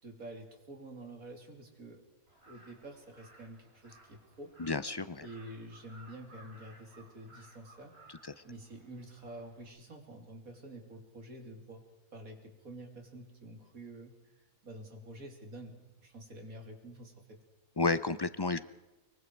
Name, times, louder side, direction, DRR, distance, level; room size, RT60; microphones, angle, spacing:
voice 1, 0.0-2.0 2.4-4.5 5.2-8.0 8.4-11.8 12.1-14.2 14.6-17.4, right 1 dB, 70° right, 3 dB, 3.5 m, -48 dB
Crow, 2.3-9.7, right 2 dB, 40° right, 4.7 m, -59 dB
voice 2, 4.6-5.3 17.8-18.6, left 3 dB, 35° left, 14 dB, 0.4 m, -31 dB
25.0 x 23.0 x 4.7 m, 1.0 s
omnidirectional pair, 1.5 m